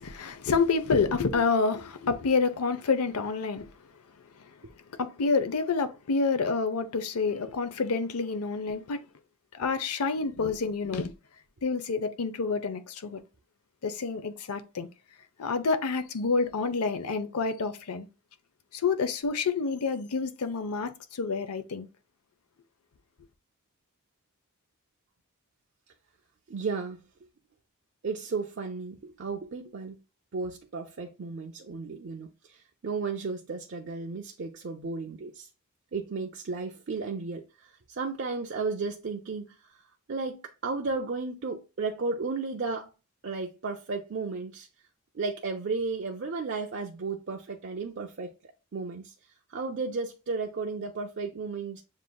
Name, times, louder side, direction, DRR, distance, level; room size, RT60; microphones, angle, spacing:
voice 1, 0.0-3.7 4.4-4.5 4.9-9.0 9.5-11.1 11.6-13.2 13.8-14.9 15.4-18.1 18.7-21.9, left 4 dB, 90° left, 0.6 m, -28 dB
voice 2, 26.5-27.0 28.0-30.0 30.3-35.5 35.9-39.6 40.1-42.9 43.2-44.7 45.1-48.3 48.7-49.1 49.5-51.8, right 4 dB, 55° right, 0.5 m, -34 dB
7.2 x 2.6 x 2.2 m
head